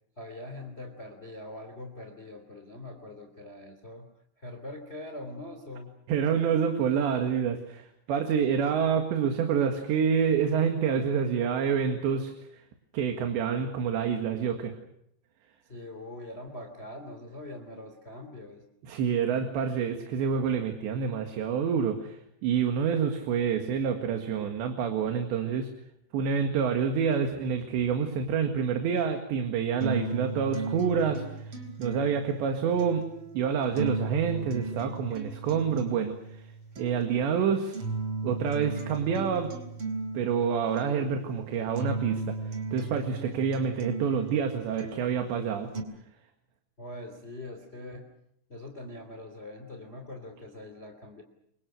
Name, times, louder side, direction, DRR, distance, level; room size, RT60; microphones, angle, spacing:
voice 1, 0.2-4.1 4.4-6.0 15.7-18.6 46.8-48.1 48.5-51.2, left 1 dB, 15° left, 6 dB, 2.4 m, -43 dB
voice 2, 6.1-12.3 12.9-14.7 18.9-22.2 22.4-25.7 26.1-31.2 31.8-33.0 33.4-36.2 36.8-37.8 38.2-39.5 40.1-42.4 42.7-45.7, right 7 dB, 75° right, 5 dB, 4.1 m, -27 dB
sound 1, 29.8-45.8, right 3 dB, 30° right, 4.5 m, -36 dB
28.5 x 24.5 x 6.4 m, 0.74 s
omnidirectional pair, 5.2 m